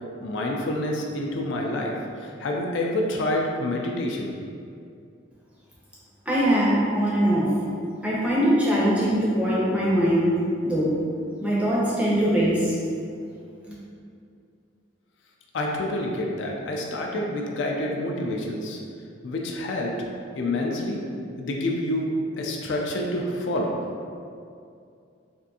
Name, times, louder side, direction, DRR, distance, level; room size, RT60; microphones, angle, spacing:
voice 1, 0.2-4.3 15.5-18.8 19.2-20.0 20.4-21.0 21.4-23.8, left 1 dB, 70° left, 0 dB, 0.4 m, -28 dB
voice 2, 6.3-7.5 8.0-10.3 10.6-11.0 11.4-12.8, equal, 5° right, -7 dB, 0.5 m, -22 dB
3.4 x 2.5 x 2.7 m, 2.4 s
head